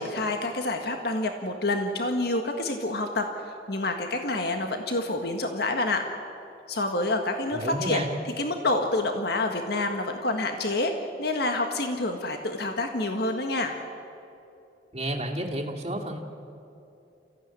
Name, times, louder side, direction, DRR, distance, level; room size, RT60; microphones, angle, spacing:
voice 1, 0.0-3.3 3.7-6.0 6.7-8.1 8.4-10.9 11.2-13.7, left 2 dB, 65° left, 4 dB, 1.7 m, -27 dB
voice 2, 7.5-8.1 14.9-16.2, right 1 dB, 35° right, -1 dB, 2.4 m, -31 dB
28.0 x 15.5 x 9.8 m, 2.8 s
head